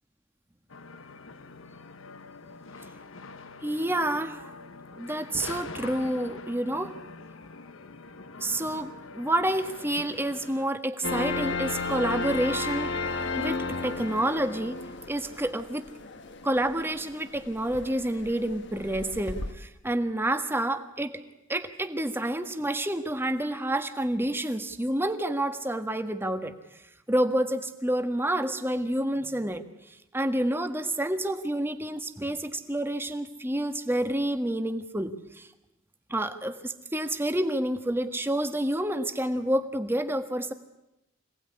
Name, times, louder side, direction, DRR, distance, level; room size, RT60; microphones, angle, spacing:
sound 1, 0.7-10.7, left 3 dB, 70° left, 1.2 m, -44 dB
voice 1, 3.6-4.5 4.9-6.9 8.4-12.9 13.3-14.8 15.1-15.9 16.4-21.2 21.5-35.5 36.1-40.5, right 1 dB, 10° right, 9 dB, 1.5 m, -29 dB
sound 2, 11.0-19.5, left 3 dB, 55° left, 1.5 m, -34 dB
26.0 x 18.5 x 9.7 m, 0.91 s
head